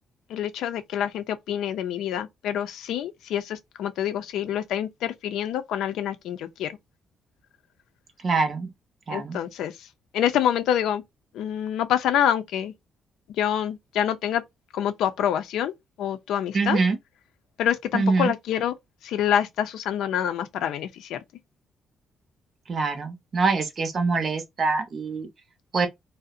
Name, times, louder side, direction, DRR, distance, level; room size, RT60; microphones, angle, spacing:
voice 1, 0.3-6.7 9.1-9.9 10.1-11.0 11.3-12.7 13.4-14.4 14.7-15.7 16.0-16.8 17.6-18.7 19.0-21.2, left 10 dB, 85° left, 0.4 m, -26 dB
voice 2, 8.2-8.7 9.1-9.4 16.5-17.0 17.9-18.3 22.7-25.3 25.7-25.9, right 4 dB, 45° right, 0.6 m, -24 dB
2.6 x 2.0 x 2.4 m
cardioid pair, 90°, 0 cm